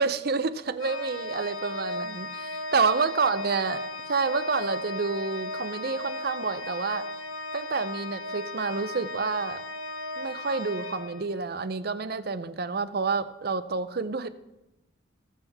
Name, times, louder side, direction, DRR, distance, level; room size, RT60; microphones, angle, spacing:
voice 1, 0.0-3.8 4.1-7.1 7.5-9.6 10.2-14.3, right 4 dB, 50° right, 11 dB, 0.6 m, -28 dB
Organ, 0.8-11.7, left 1 dB, 90° left, 0.9 m, -36 dB
20.0 x 7.1 x 3.5 m, 0.97 s
head